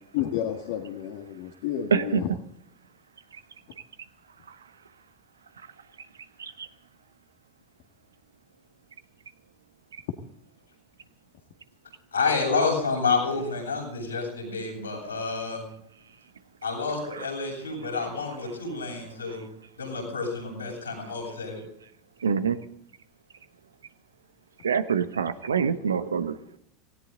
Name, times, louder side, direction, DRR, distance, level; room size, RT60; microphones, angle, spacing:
voice 1, 0.1-2.3, left 10 dB, 65° left, 3 dB, 1.7 m, -31 dB
voice 2, 1.9-2.2 4.5-4.6 6.4-6.7 17.1-17.3 19.3-19.4 22.2-22.6 24.6-26.4, right 6 dB, 85° right, 12 dB, 1.0 m, -26 dB
voice 3, 12.1-15.6 16.6-19.4 19.8-21.6, left 4 dB, 90° left, -1 dB, 7.5 m, -29 dB
18.0 x 17.0 x 3.9 m, 0.72 s
hypercardioid pair, 80°, 0 cm